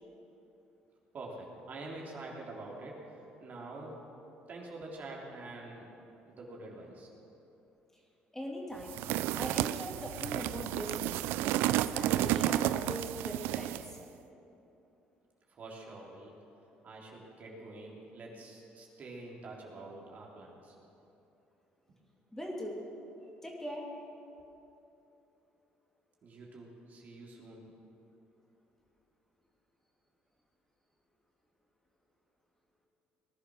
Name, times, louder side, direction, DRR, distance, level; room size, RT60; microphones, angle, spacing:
voice 1, 1.1-4.0 4.5-5.9 6.2-7.1 15.5-16.4 16.8-20.8 21.9-22.0 26.2-27.6, right 2 dB, 50° right, -2 dB, 3.5 m, -46 dB
voice 2, 8.3-9.0 9.3-11.2 11.7-14.0 22.3-22.8 23.4-23.9, equal, 10° left, -1 dB, 2.7 m, -41 dB
sound 1, 8.9-13.9, right 14 dB, 80° right, 0.4 m, -31 dB
19.5 x 11.0 x 6.4 m, 2.9 s
supercardioid pair, 80°, 4 cm